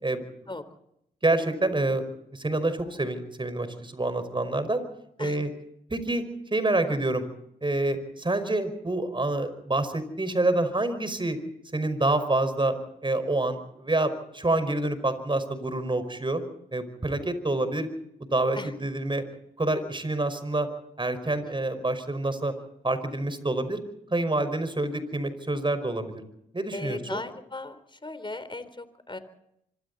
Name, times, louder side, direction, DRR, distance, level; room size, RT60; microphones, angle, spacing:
voice 1, 0.0-0.5 1.2-2.0 2.3-4.8 5.2-5.5 5.9-6.2 6.5-7.2 7.6-11.4 11.7-12.7 13.0-16.4 16.7-17.9 18.3-19.2 19.6-20.7 21.0-22.5 22.8-23.8 24.1-26.2 26.5-27.2, right 2 dB, 25° right, 11 dB, 5.2 m, -27 dB
voice 2, 21.2-21.6 26.7-29.2, left 2 dB, 25° left, 12 dB, 3.8 m, -38 dB
25.5 x 25.0 x 4.2 m, 0.76 s
hypercardioid pair, 45°, 20 cm